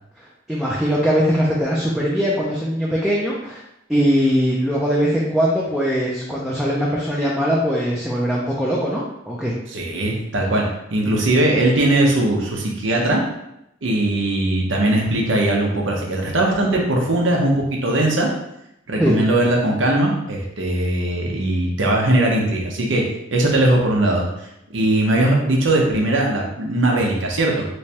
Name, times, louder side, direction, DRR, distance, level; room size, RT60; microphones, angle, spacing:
voice 1, 0.5-3.6 3.9-9.6 19.0-19.2, equal, ahead, -5 dB, 0.4 m, -21 dB
voice 2, 9.7-10.6 10.9-13.2 13.8-18.3 18.9-23.0 23.3-24.3 24.7-27.7, right 1 dB, 90° right, -1 dB, 0.8 m, -19 dB
3.4 x 3.2 x 2.8 m, 0.83 s
head